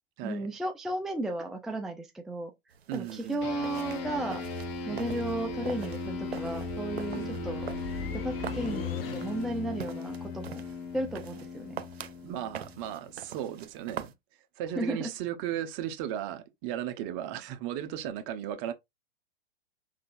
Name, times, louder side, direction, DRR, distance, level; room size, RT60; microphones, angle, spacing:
voice 1, 0.2-2.5 2.9-4.4 4.9-7.7 8.1-10.6 10.9-11.8 14.8-15.1, right 1 dB, ahead, 0.5 m, -34 dB
sound 1, 2.7-14.1, right 8 dB, 90° right, 0.8 m, -44 dB
voice 2, 2.9-3.4 4.9-5.4 7.1-7.4 12.2-14.1 14.6-18.7, right 11 dB, 40° right, 0.9 m, -36 dB
sound 2, 3.4-13.1, left 4 dB, 40° left, 2.3 m, -38 dB
sound 3, 4.0-9.7, left 4 dB, 65° left, 1.2 m, -42 dB
5.4 x 3.8 x 2.5 m
hypercardioid pair, 120°, 30 cm